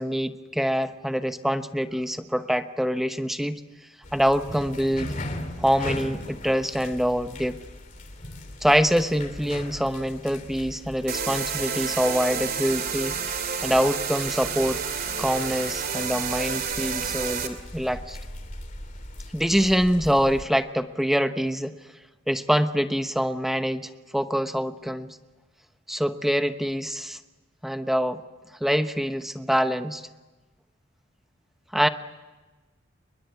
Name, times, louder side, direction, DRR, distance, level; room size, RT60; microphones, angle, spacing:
voice 1, 0.0-3.6 4.1-5.2 5.6-7.6 8.6-13.1 13.6-14.8 15.2-18.2 19.3-21.7 22.3-25.2 25.9-27.2 27.6-28.2 28.6-30.0 31.7-31.9, equal, ahead, 8 dB, 1.0 m, -25 dB
sound 1, 4.0-20.4, left 1 dB, 40° left, 2.8 m, -39 dB
sound 2, 11.1-17.5, right 6 dB, 45° right, 2.9 m, -30 dB
29.0 x 22.5 x 8.4 m, 1.2 s
head